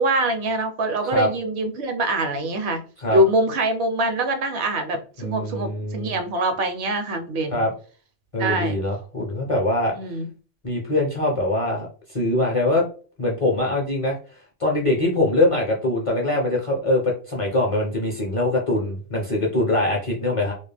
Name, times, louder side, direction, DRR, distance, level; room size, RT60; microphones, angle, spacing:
voice 1, 0.0-2.8 3.1-7.6 8.4-8.8 9.9-10.3, right 1 dB, 70° right, 0.8 m, -24 dB
voice 2, 5.2-6.2 7.5-7.7 8.3-9.9 10.6-12.9 13.2-14.1 14.6-20.5, left 1 dB, 35° left, 0.6 m, -23 dB
2.3 x 2.1 x 3.2 m
omnidirectional pair, 1.2 m